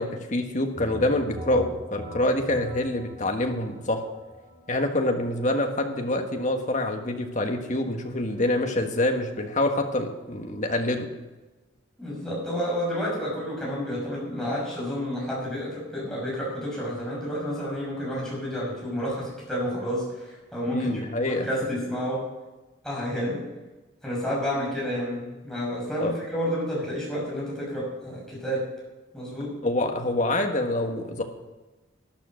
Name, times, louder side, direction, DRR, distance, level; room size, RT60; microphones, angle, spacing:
voice 1, 0.0-4.0 4.7-11.1 20.7-21.5 26.0-26.1 29.6-31.2, left 1 dB, 40° left, 4 dB, 1.5 m, -26 dB
sound 1, 0.7-10.3, right 1 dB, 20° right, 5.7 m, -45 dB
voice 2, 12.0-20.9 21.2-22.3 22.8-23.4 24.0-28.7 29.1-29.6, equal, 5° left, -5 dB, 6.3 m, -30 dB
12.0 x 11.5 x 6.4 m, 1.1 s
head